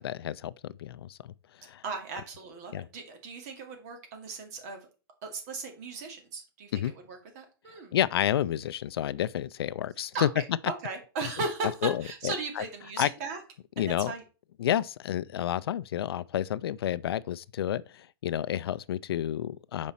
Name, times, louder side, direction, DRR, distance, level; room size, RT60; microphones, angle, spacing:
voice 1, 0.0-1.8 2.7-2.9 6.7-6.9 7.9-10.3 11.8-12.6 13.0-13.1 13.8-14.1 14.6-19.9, left 11 dB, 75° left, 0.4 m, -30 dB
voice 2, 1.8-4.9 5.2-6.7 7.0-8.0 10.1-13.4 13.8-14.2 18.5-18.6, right 4 dB, 40° right, 2.2 m, -37 dB
7.2 x 5.2 x 4.1 m
hypercardioid pair, 165°, 13 cm